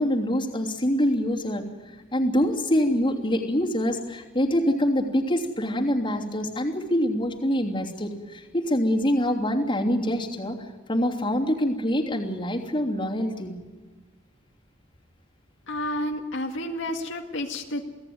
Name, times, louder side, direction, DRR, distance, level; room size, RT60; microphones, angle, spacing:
voice 1, 0.0-1.6 2.1-10.6 10.9-13.5, equal, 25° left, -1 dB, 3.1 m, -25 dB
voice 2, 15.7-17.8, left 1 dB, 70° left, 1 dB, 2.1 m, -30 dB
28.5 x 17.5 x 9.5 m, 1.3 s
head